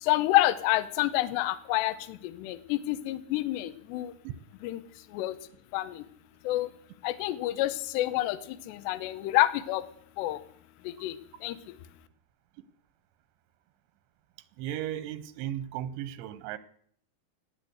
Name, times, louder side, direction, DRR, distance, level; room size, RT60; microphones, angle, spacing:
voice 1, 0.0-4.1 4.6-4.8 5.1-5.4 5.7-6.0 6.4-6.7 7.0-9.8 10.2-10.4 10.8-11.2 11.4-11.8, left 16 dB, 80° left, 13 dB, 2.9 m, -28 dB
voice 2, 14.6-16.6, right 11 dB, 90° right, 13 dB, 3.1 m, -35 dB
19.0 x 8.3 x 7.9 m, 0.65 s
omnidirectional pair, 5.0 m